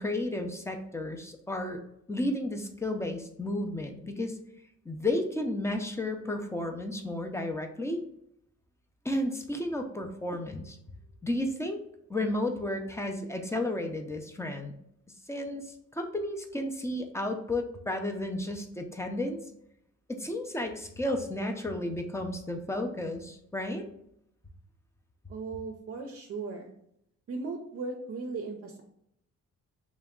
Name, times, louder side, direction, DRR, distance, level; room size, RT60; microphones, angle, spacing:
voice 1, 0.0-1.8 2.1-4.4 4.9-8.0 9.0-10.8 11.2-11.8 12.1-14.7 15.3-15.6 15.9-19.4 20.1-23.8, left 1 dB, 10° left, 4 dB, 0.5 m, -32 dB
voice 2, 25.3-26.7 27.3-28.8, right 4 dB, 50° right, 2 dB, 0.5 m, -37 dB
3.3 x 3.0 x 3.6 m, 0.75 s
cardioid pair, 140°, 30 cm